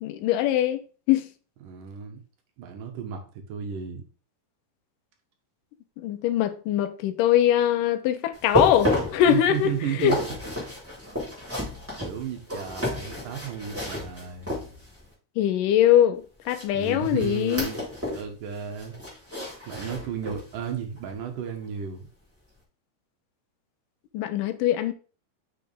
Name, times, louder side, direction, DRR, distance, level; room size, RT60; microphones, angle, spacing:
voice 1, 0.0-1.3 6.0-9.7 10.0-10.1 15.4-17.7 24.1-24.9, left 11 dB, 80° left, 2.4 m, -22 dB
voice 2, 1.6-2.2 2.6-4.0 9.3-10.2 10.6-10.8 12.0-14.6 16.7-17.8 18.1-19.0 19.7-22.1, right 8 dB, 85° right, 2.9 m, -33 dB
sound 1, 8.3-15.1 16.5-18.3 18.6-20.5 21.0-21.1 21.7-21.8, left 1 dB, 5° right, 3.7 m, -31 dB
6.5 x 6.5 x 3.5 m
omnidirectional pair, 3.8 m